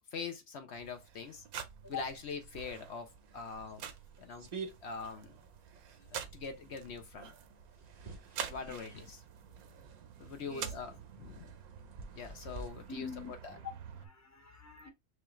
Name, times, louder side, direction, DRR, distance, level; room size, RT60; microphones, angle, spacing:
voice 1, 0.1-1.4 1.9-3.9 4.2-4.5 4.8-5.4 6.1-7.3 8.5-9.2 10.2-13.6, left 5 dB, 55° left, 0.8 m, -44 dB
sound 1, 0.7-14.1, right 8 dB, 70° right, 1.1 m, -48 dB
sound 2, 3.1-12.7, right 3 dB, 50° right, 0.5 m, -51 dB
voice 2, 8.7-9.0 10.5-10.7 12.9-14.9, left 7 dB, 15° left, 0.7 m, -46 dB
6.2 x 2.4 x 3.0 m
omnidirectional pair, 1.6 m